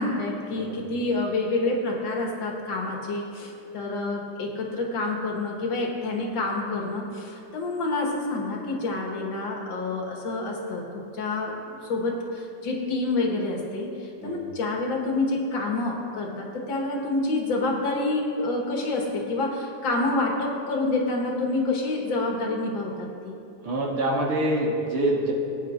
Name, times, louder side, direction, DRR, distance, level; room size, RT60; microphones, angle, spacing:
voice 1, 0.0-10.8 11.1-11.5 11.8-13.9 14.2-23.4, left 2 dB, 65° left, 0 dB, 2.2 m, -28 dB
voice 2, 23.6-25.3, right 1 dB, 80° right, -2 dB, 2.3 m, -25 dB
20.0 x 9.4 x 2.6 m, 2.9 s
omnidirectional pair, 2.3 m